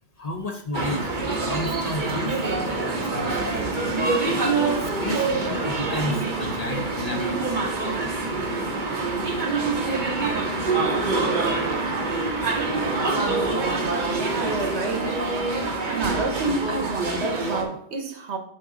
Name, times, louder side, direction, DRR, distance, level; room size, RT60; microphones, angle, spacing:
voice 1, 0.2-1.1 1.4-3.6 4.8-7.6, left 1 dB, 40° left, 0.8 m, -32 dB
sound 1, 0.7-17.6, right 3 dB, 45° right, 1.2 m, -25 dB
voice 2, 14.1-15.2 15.7-18.4, right 3 dB, 75° right, 1.3 m, -29 dB
8.3 x 4.2 x 3.8 m
omnidirectional pair, 1.1 m